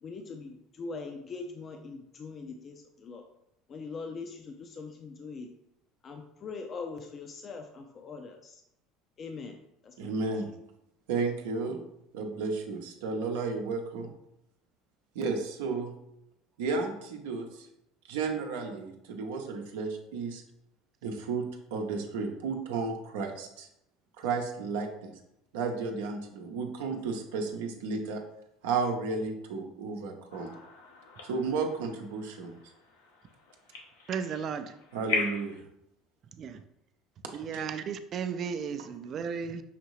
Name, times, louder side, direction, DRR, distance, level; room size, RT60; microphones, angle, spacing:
voice 1, 0.0-3.2 3.7-5.5 6.0-8.6 9.2-9.6 9.8-10.1, left 4 dB, 40° left, 0.5 m, -42 dB
voice 2, 10.0-10.5 11.1-11.8 12.1-14.1 15.1-16.0 16.6-17.7 18.1-20.4 21.0-23.7 24.2-25.1 25.5-28.2 28.6-30.5 31.2-32.5 34.9-35.5 37.5-37.6, right 4 dB, 80° right, 0.7 m, -33 dB
sound 1, 30.3-35.6, left 4 dB, 85° left, 0.8 m, -39 dB
voice 3, 34.1-34.7 36.4-36.6 37.3-39.6, right 6 dB, 45° right, 0.4 m, -34 dB
5.7 x 2.6 x 3.1 m
hypercardioid pair, 80°, 0 cm